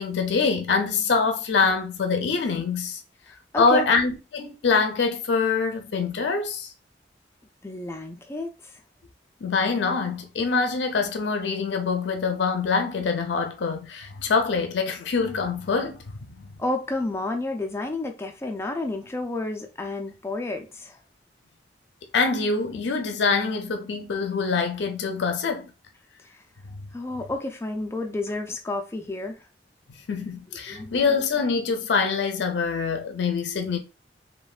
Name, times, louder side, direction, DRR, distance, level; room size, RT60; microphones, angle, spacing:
voice 1, 0.0-3.0 3.6-6.7 9.4-16.5 22.1-25.7 30.1-33.8, left 4 dB, 75° left, 0.5 m, -24 dB
voice 2, 3.5-3.9 7.6-8.7 16.6-21.0 26.9-29.4 30.7-31.0, left 2 dB, 15° left, 0.3 m, -31 dB
3.1 x 2.1 x 2.3 m
head